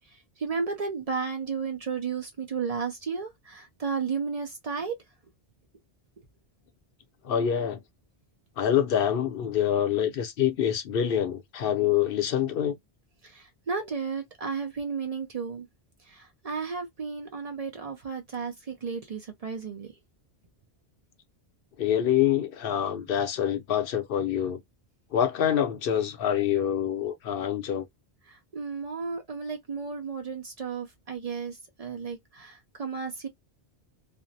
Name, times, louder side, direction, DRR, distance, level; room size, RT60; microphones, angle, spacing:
voice 1, 0.4-4.9 13.2-15.7 16.1-19.9 28.3-33.3, right 5 dB, 50° right, 0.5 m, -33 dB
voice 2, 7.2-7.8 8.6-12.8 21.8-24.6 25.1-27.9, left 9 dB, 65° left, 0.7 m, -26 dB
2.5 x 2.0 x 2.6 m
omnidirectional pair, 1.1 m